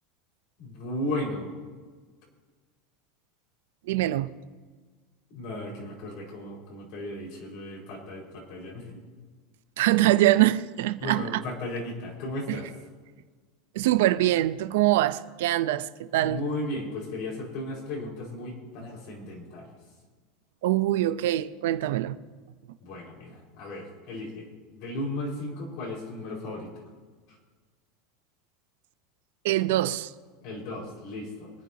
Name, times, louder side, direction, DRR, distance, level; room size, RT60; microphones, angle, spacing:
voice 1, 0.6-1.5 5.3-9.0 11.0-12.7 16.2-19.7 22.8-24.5 24.7-26.8 30.4-31.5, left 1 dB, 55° left, 5.1 m, -35 dB
voice 2, 3.9-4.3 9.8-11.2 12.5-12.6 13.8-16.4 20.6-22.1 29.4-30.1, right 15 dB, 80° right, 0.7 m, -23 dB
24.5 x 10.5 x 2.9 m
supercardioid pair, 145°, 0 cm